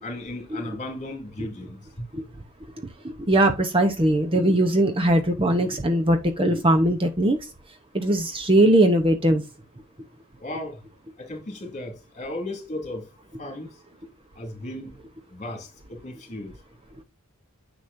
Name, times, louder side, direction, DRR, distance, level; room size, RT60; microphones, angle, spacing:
voice 1, 0.0-2.1 10.4-10.8 11.2-13.1 13.4-13.8 14.4-15.0 15.3-16.5, left 1 dB, 30° left, 2.7 m, -35 dB
voice 2, 3.2-7.4 7.9-9.4, right 1 dB, 25° right, 0.9 m, -20 dB
10.0 x 6.1 x 2.6 m
head